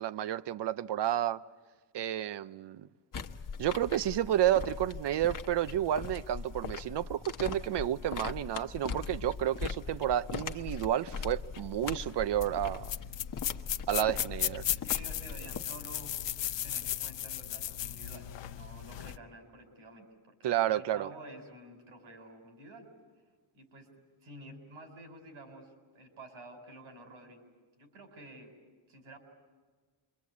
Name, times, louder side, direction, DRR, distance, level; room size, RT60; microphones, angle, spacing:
voice 1, 0.0-1.4 1.9-2.9 3.6-12.9 13.9-14.6 20.4-21.1, right 12 dB, 60° right, 0.7 m, -31 dB
sound 1, 3.1-15.6, left 5 dB, 40° left, 1.1 m, -40 dB
sound 2, 12.4-19.2, left 11 dB, 65° left, 0.8 m, -36 dB
voice 2, 14.7-16.2 16.6-22.9 23.5-23.9 24.2-27.4 27.8-28.5 28.9-29.2, right 1 dB, 90° right, 4.8 m, -50 dB
27.5 x 23.5 x 8.4 m
cardioid pair, 140°, 47 cm